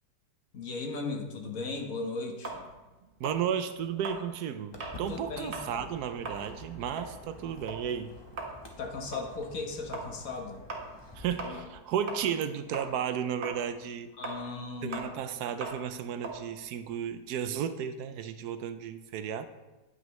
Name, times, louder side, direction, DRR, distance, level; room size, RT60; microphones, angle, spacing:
voice 1, 0.5-2.6 5.1-5.8 8.8-10.6 14.2-15.0, left 3 dB, 60° left, 3 dB, 1.5 m, -37 dB
sound 1, 2.4-5.0 5.4-5.7 6.1-12.5 12.7-17.5, right 3 dB, 55° right, 1.7 m, -41 dB
voice 2, 3.2-8.1 11.2-14.1 14.8-19.5, right 8 dB, 75° right, 10 dB, 1.1 m, -33 dB
Walk footsteps, 4.7-11.6, left 1 dB, 20° left, 0.8 m, -49 dB
9.3 x 9.1 x 3.1 m, 1.1 s
omnidirectional pair, 1.7 m